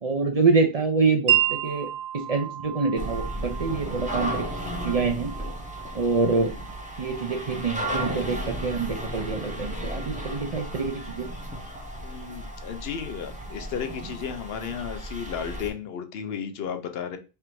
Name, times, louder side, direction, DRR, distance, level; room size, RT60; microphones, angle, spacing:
voice 1, 0.0-1.9 2.1-4.4 4.8-5.3 5.9-6.5 7.0-11.3, right 4 dB, 45° right, 4 dB, 0.6 m, -26 dB
Wind chime, 1.3-8.9, right 13 dB, 90° right, 0.9 m, -32 dB
sound 1, 3.0-15.7, right 1 dB, 10° right, 0.7 m, -34 dB
voice 2, 12.0-17.2, left 7 dB, 75° left, 7 dB, 0.9 m, -34 dB
3.4 x 2.5 x 4.4 m, 0.31 s
omnidirectional pair, 1.0 m